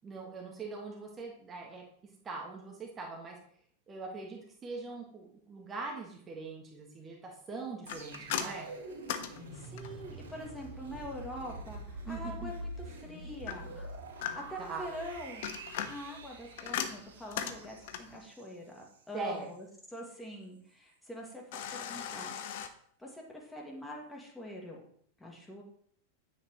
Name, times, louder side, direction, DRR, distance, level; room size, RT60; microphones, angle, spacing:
voice 1, 0.0-1.8 2.2-3.4 3.9-8.7 12.1-12.5 14.7-14.8 19.1-19.5, right 3 dB, 20° right, -1 dB, 1.7 m, -42 dB
sound 1, 7.8-19.0 19.4-19.5, right 1 dB, 60° right, 3.2 m, -46 dB
sound 2, 7.9-10.1 13.5-14.7 15.2-18.2 21.5-22.7, left 9 dB, 50° left, 0.8 m, -39 dB
voice 2, 9.5-22.3 23.0-24.8 25.2-25.6, equal, 5° left, -2 dB, 2.2 m, -45 dB
9.5 x 8.3 x 3.1 m, 0.62 s
figure-of-eight pair, 90°, 0 cm